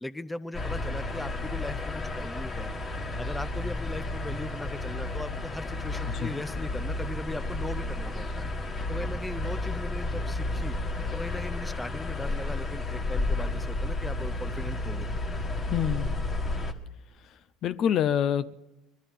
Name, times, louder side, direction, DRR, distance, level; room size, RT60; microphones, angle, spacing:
voice 1, 0.0-8.4 8.9-10.8 11.1-15.1, left 2 dB, 10° left, 14 dB, 0.6 m, -38 dB
sound 1, 0.5-16.7, left 2 dB, 35° left, 1.7 m, -32 dB
voice 2, 15.7-16.2 17.2-18.5, left 9 dB, 50° left, 15 dB, 0.6 m, -27 dB
21.0 x 12.0 x 5.7 m, 0.93 s
hypercardioid pair, 80°, 0 cm